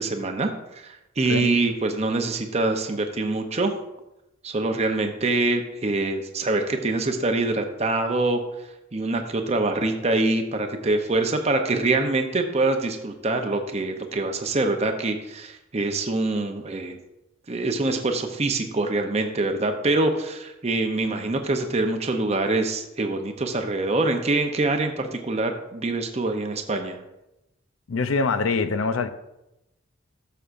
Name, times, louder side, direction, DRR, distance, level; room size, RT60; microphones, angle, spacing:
voice 1, 0.0-3.7 4.4-8.4 8.9-17.0 17.5-27.0, right 2 dB, 35° right, 0.6 m, -25 dB
voice 2, 27.9-29.1, left 4 dB, 85° left, 0.5 m, -24 dB
12.5 x 6.8 x 2.5 m
head